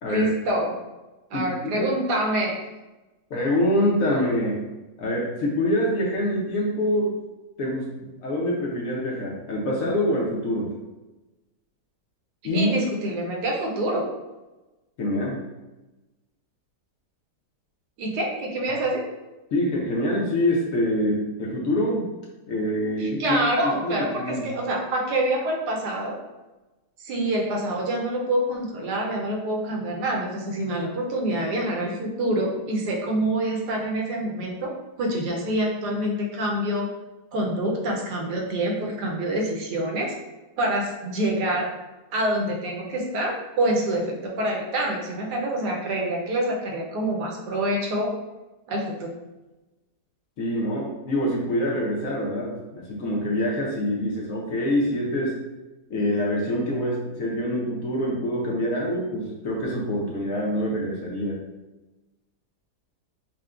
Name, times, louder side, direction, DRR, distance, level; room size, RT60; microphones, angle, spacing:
voice 1, 0.0-0.7 1.3-2.5 12.5-14.0 18.0-19.0 23.0-26.2 27.0-34.7 35.0-36.9 37.3-40.1 40.6-41.7 42.1-48.1 48.7-49.1, right 1 dB, 80° right, -1 dB, 1.3 m, -26 dB
voice 2, 1.3-1.9 3.3-4.6 5.0-7.1 7.6-10.7 12.4-12.7 15.0-15.4 19.5-22.1 22.5-24.5 50.4-55.4 55.9-61.4, left 1 dB, 65° left, -3 dB, 1.0 m, -25 dB
5.5 x 2.2 x 2.4 m, 1.1 s
omnidirectional pair, 1.8 m